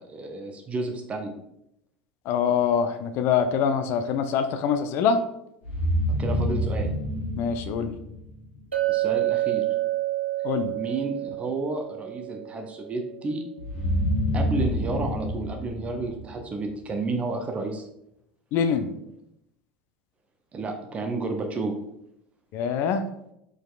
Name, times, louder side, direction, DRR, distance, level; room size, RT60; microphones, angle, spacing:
voice 1, 0.0-1.3 6.2-6.9 8.9-9.6 10.7-13.4 14.3-17.8 20.5-21.8, right 3 dB, 20° right, 4 dB, 0.6 m, -31 dB
voice 2, 2.3-5.2 7.4-7.9 10.4-10.8 18.5-18.9 22.5-23.0, left 7 dB, 45° left, 9 dB, 0.4 m, -24 dB
sound 1, 5.6-8.6 13.6-16.8, equal, 60° left, 1.2 m, -28 dB
Chink clink, 8.7-12.9, right 16 dB, 80° right, 0.4 m, -28 dB
4.8 x 4.3 x 2.3 m, 0.80 s
figure-of-eight pair, 75°, 6 cm